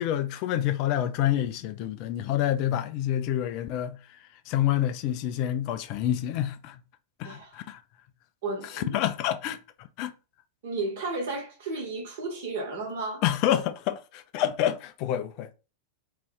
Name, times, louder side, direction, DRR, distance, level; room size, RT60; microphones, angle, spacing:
voice 1, 0.0-4.0 4.5-6.8 7.2-7.8 8.7-9.6 10.0-10.1 13.2-15.5, left 11 dB, 45° left, 0.3 m, -27 dB
voice 2, 7.2-7.6 8.4-9.0 10.6-13.2, right 3 dB, 55° right, 1.1 m, -33 dB
2.6 x 2.3 x 3.4 m
figure-of-eight pair, 90°, 0 cm